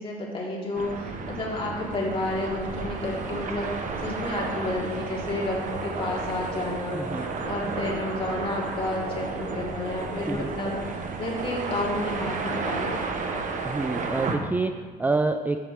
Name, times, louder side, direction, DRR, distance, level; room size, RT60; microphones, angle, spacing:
voice 1, 0.0-13.0, left 2 dB, 30° left, -4 dB, 3.1 m, -31 dB
sound 1, 0.7-14.4, right 4 dB, 50° right, 1.3 m, -32 dB
voice 2, 6.9-7.3 10.3-10.5 13.6-15.6, right 3 dB, 10° right, 7 dB, 0.4 m, -27 dB
14.0 x 7.9 x 3.2 m, 1.5 s
cardioid pair, 110°, 17 cm